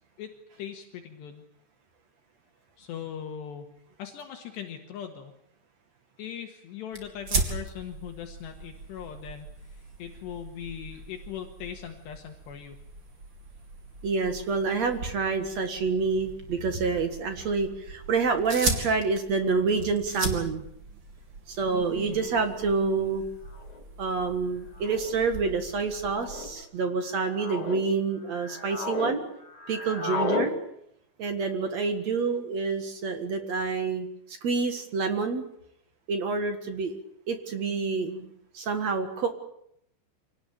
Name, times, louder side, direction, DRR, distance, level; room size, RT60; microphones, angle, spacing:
voice 1, 0.2-1.5 2.8-3.7 4.0-5.3 6.2-12.8 22.0-22.2 30.0-30.3, left 9 dB, 70° left, 4 dB, 3.6 m, -40 dB
sound 1, 6.9-26.6, right 3 dB, 30° right, 3.3 m, -38 dB
voice 2, 14.0-20.6 21.5-23.2 24.0-29.2 29.7-30.5 31.2-35.5 36.1-37.0 37.3-39.3, right 4 dB, 55° right, 8 dB, 2.1 m, -28 dB
sound 2, 23.5-23.8 24.8-25.1 26.0-26.5 27.1-27.8 28.3-29.2 29.4-30.5, left 2 dB, 25° left, 3.6 m, -33 dB
26.0 x 18.5 x 9.0 m, 0.75 s
omnidirectional pair, 5.3 m